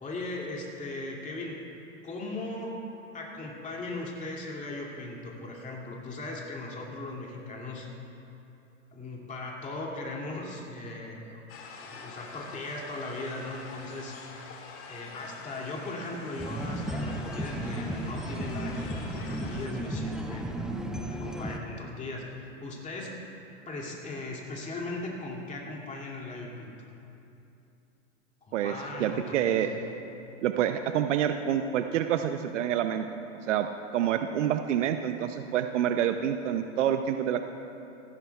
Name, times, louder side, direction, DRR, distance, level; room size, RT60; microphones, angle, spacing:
voice 1, 0.0-1.6 2.0-2.8 3.1-7.9 8.9-11.4 11.8-14.2 14.9-20.4 21.1-22.3 22.6-23.2 23.7-26.7 28.4-29.7, left 2 dB, 20° left, -2 dB, 2.5 m, -38 dB
sound 1, 11.5-19.7, left 4 dB, 35° left, 1.8 m, -46 dB
sound 2, 16.4-21.6, right 1 dB, ahead, 0.6 m, -34 dB
voice 2, 29.0-29.7 30.4-33.0 33.5-33.7 33.9-37.4, right 10 dB, 70° right, 8 dB, 0.7 m, -27 dB
18.5 x 15.5 x 2.4 m, 2.8 s
hypercardioid pair, 110°, 38 cm